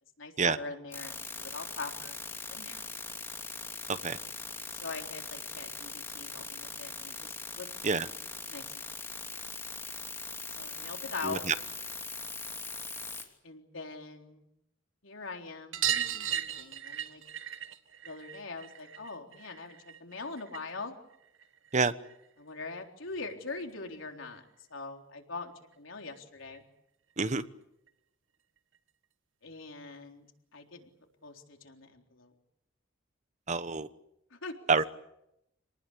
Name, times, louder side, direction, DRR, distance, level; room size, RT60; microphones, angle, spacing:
voice 1, 0.2-2.8 4.7-7.7 8.5-9.2 10.6-11.4 13.4-14.5 15.0-17.2 18.0-20.9 22.4-24.4 24.7-26.6 29.4-30.3 30.5-30.9 31.2-32.3 34.3-34.7, left 3 dB, 85° left, 3 dB, 3.9 m, -42 dB
sound 1, 0.9-13.2, left 3 dB, 10° left, 3.0 m, -41 dB
voice 2, 11.2-11.5 21.7-21.9 27.2-27.4 33.5-33.9 34.7-34.8, right 4 dB, 35° right, 13 dB, 1.0 m, -27 dB
sound 2, 15.7-20.8 21.1-22.3 23.6-23.7 23.9-24.0 24.3-24.4 25.7-25.8 26.1-26.2 26.5-26.6 27.9-28.0 28.7-28.8, right 10 dB, 75° right, 1.6 m, -36 dB
28.0 x 19.5 x 8.6 m, 0.83 s
head